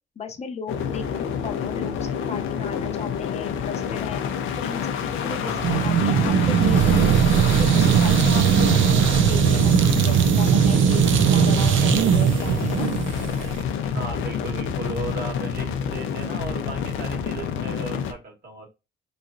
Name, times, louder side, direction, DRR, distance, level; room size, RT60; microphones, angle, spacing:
voice 1, 0.2-4.2 4.6-7.2 7.6-8.8 9.3-12.9, left 6 dB, 35° left, 0.7 m, -36 dB
sound 1, 0.7-18.1, left 7 dB, 80° left, 0.6 m, -28 dB
voice 2, 5.2-5.8 13.9-18.7, right 3 dB, 50° right, 1.5 m, -35 dB
sound 2, 5.6-13.6, right 8 dB, 75° right, 0.4 m, -19 dB
3.8 x 3.1 x 2.6 m
cardioid pair, 90°, 20 cm